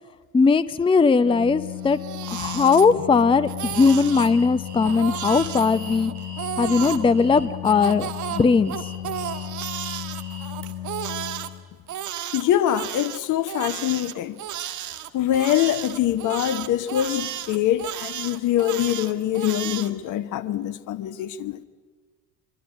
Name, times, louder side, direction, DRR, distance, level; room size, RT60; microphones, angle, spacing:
voice 1, 0.3-2.0 2.3-6.1 6.6-8.8, left 4 dB, 10° left, 0.8 m, -19 dB
Organ, 1.2-12.0, left 12 dB, 75° left, 1.1 m, -35 dB
Crying sobbing, 1.8-3.2 3.5-4.3 4.8-7.0 7.6-11.5 11.9-19.9, right 11 dB, 40° right, 1.7 m, -33 dB
Alarm, 3.7-10.7, right 1 dB, 85° right, 2.9 m, -44 dB
voice 2, 12.3-14.4 15.1-21.6, left 12 dB, 40° left, 1.1 m, -24 dB
24.5 x 24.5 x 9.5 m
figure-of-eight pair, 65°, 45 cm